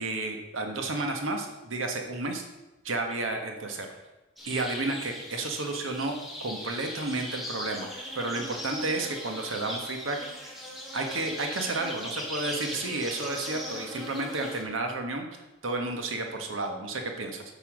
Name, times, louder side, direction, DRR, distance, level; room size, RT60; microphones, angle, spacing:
voice 1, 0.0-2.4 2.8-3.9 4.5-10.6 10.9-17.4, right 2 dB, 80° right, 4 dB, 1.4 m, -32 dB
sound 1, 4.4-14.6, equal, ahead, 1.7 m, -39 dB
9.1 x 5.6 x 6.3 m, 1.0 s
head